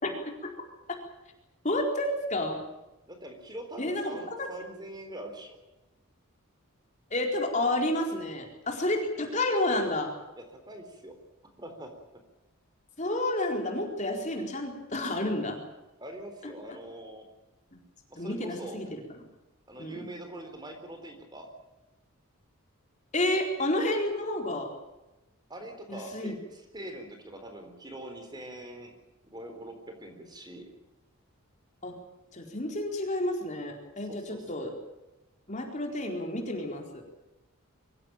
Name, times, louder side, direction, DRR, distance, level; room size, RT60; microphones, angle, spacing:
voice 1, 1.6-2.6 3.8-4.1 4.4-4.5 7.1-10.1 13.0-15.6 18.2-19.2 19.8-20.1 23.1-24.7 25.9-26.3 31.8-31.9 32.3-34.7 35.5-37.0, left 1 dB, 35° left, 2 dB, 4.3 m, -30 dB
voice 2, 3.1-5.6 10.4-11.1 11.6-11.9 16.0-17.3 18.1-18.8 19.7-21.5 25.5-28.9 29.3-30.7 34.0-34.4, right 1 dB, 20° right, 5 dB, 3.8 m, -43 dB
24.0 x 16.0 x 9.0 m, 1.0 s
head